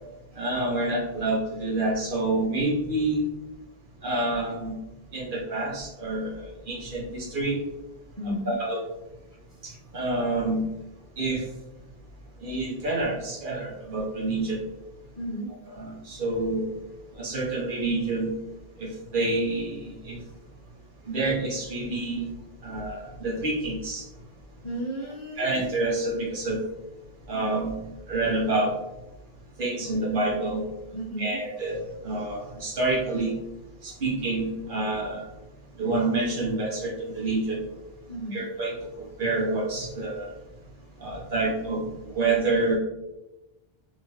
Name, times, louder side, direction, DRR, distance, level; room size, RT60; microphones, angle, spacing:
voice 1, 0.4-3.2 4.0-4.8 5.1-7.6 8.3-8.8 9.6-10.7 11.2-11.4 12.4-14.6 15.8-16.7 17.2-18.3 18.8-18.9 19.1-20.2 21.1-22.3 22.6-24.0 25.4-26.6 27.3-27.8 28.1-28.7 29.6-30.6 31.2-33.3 33.8-35.2 35.8-37.6 38.3-38.8 39.2-40.3 41.0-41.8 42.1-42.8, right 2 dB, 60° right, -2 dB, 0.8 m, -27 dB
voice 2, 8.2-8.6 9.7-9.8 15.2-15.5 24.6-25.6 30.9-31.4 38.1-38.4, right 1 dB, 35° left, -7 dB, 0.7 m, -33 dB
2.8 x 2.4 x 2.9 m, 0.96 s
omnidirectional pair, 1.1 m